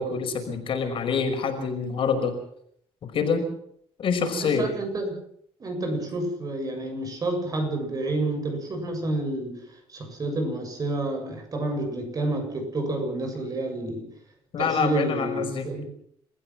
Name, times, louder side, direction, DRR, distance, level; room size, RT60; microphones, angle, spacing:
voice 1, 0.0-2.4 3.0-3.5 4.0-4.7 14.5-15.7, left 5 dB, 50° left, 5 dB, 5.6 m, -26 dB
voice 2, 4.4-5.2 5.6-14.1 14.6-15.9, right 2 dB, 35° right, 5 dB, 7.6 m, -29 dB
30.0 x 15.0 x 6.1 m, 0.67 s
cardioid pair, 120°, 11 cm